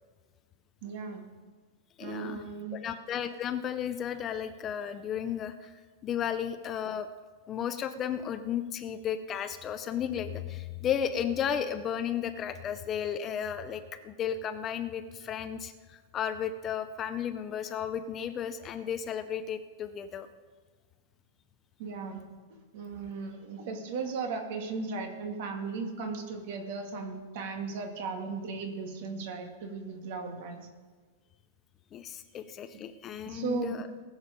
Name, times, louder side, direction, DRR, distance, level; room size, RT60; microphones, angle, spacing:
voice 1, 0.8-1.3 2.0-2.8 21.8-22.2 22.5-30.6 32.7-32.8 33.3-33.7, right 4 dB, 50° right, 4 dB, 2.0 m, -36 dB
voice 2, 2.0-2.4 2.7-7.1 7.5-20.3 31.9-33.9, left 8 dB, 20° left, 10 dB, 0.5 m, -34 dB
20.0 x 7.2 x 5.2 m, 1.4 s
supercardioid pair, 165°, 0 cm